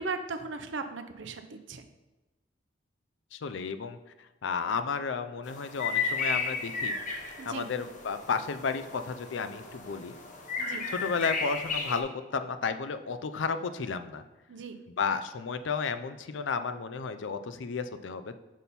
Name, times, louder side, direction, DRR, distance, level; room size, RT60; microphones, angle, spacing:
voice 1, 0.0-1.8 7.4-7.7 10.6-10.9 14.5-14.8, right 4 dB, 90° right, 8 dB, 0.6 m, -37 dB
voice 2, 3.3-4.0 4.4-6.9 7.5-10.1 10.9-14.2 15.0-18.3, left 5 dB, 90° left, 11 dB, 0.5 m, -32 dB
sound 1, 5.5-12.0, left 4 dB, 45° left, 0.8 m, -34 dB
6.3 x 5.3 x 4.2 m, 1.1 s
head